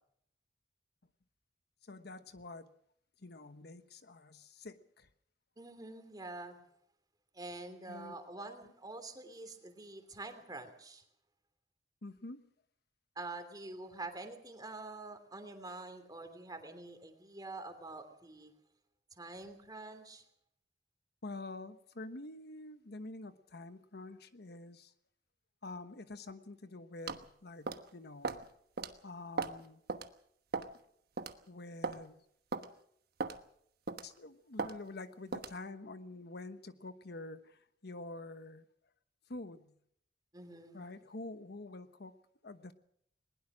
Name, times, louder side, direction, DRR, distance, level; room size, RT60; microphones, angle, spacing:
voice 1, 1.8-2.7 3.2-5.1 7.9-8.1 12.0-12.5 21.2-24.9 25.6-28.4 29.0-29.8 31.5-32.2 34.0-38.6 39.3-39.7 40.7-42.1 42.4-42.7, left 2 dB, 65° left, 1.1 m, -47 dB
voice 2, 5.6-6.6 7.3-11.0 13.2-18.5 19.2-20.2 40.3-40.8, right 2 dB, 20° right, 3.0 m, -46 dB
sound 1, 27.1-27.3 27.7-27.9 28.2-28.4 28.8-28.9 29.4-29.6 29.9-30.1 30.5-30.8 31.2-31.3 31.8-32.0 32.5-32.7 33.2-33.4 33.9-34.1 34.6-34.8 35.3-35.6, right 4 dB, 60° right, 1.2 m, -37 dB
20.5 x 20.0 x 6.2 m
head